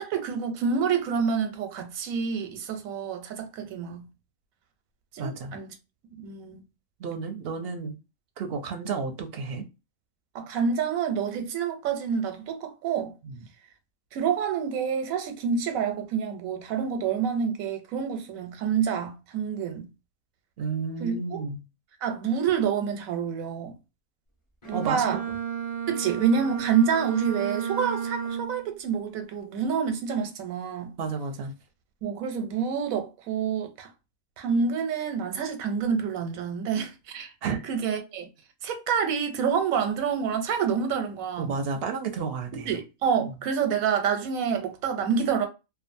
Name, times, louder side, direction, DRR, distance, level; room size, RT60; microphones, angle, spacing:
voice 1, 0.0-4.1 5.1-5.7 6.2-6.6 10.3-13.1 14.1-19.9 21.0-21.4 22.0-23.8 24.6-25.2 25.9-30.9 32.0-33.9 34.4-37.3 37.7-38.3 38.6-41.6 42.5-45.5, right 6 dB, 90° right, 1.1 m, -28 dB
voice 2, 5.2-5.6 7.0-8.0 8.4-9.7 13.2-13.5 20.6-21.7 24.7-25.0 31.0-31.5 37.4-37.6 41.4-42.8 43.2-43.3, right 5 dB, 60° right, 0.6 m, -32 dB
Bowed string instrument, 24.6-28.7, right 7 dB, 25° left, 0.9 m, -32 dB
2.6 x 2.4 x 2.5 m
omnidirectional pair, 1.4 m